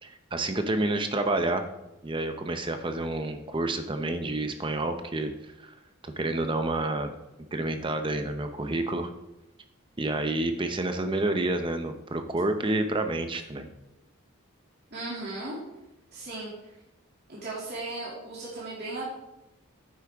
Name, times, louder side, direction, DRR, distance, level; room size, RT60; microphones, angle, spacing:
voice 1, 0.0-1.6 2.0-5.3 5.6-5.7 6.0-7.1 7.5-9.1 10.0-13.7, right 2 dB, 25° right, 7 dB, 0.7 m, -29 dB
voice 2, 14.9-15.6 16.1-16.5 17.3-19.0, right 2 dB, 50° right, -8 dB, 2.6 m, -36 dB
9.5 x 8.5 x 3.5 m, 0.92 s
head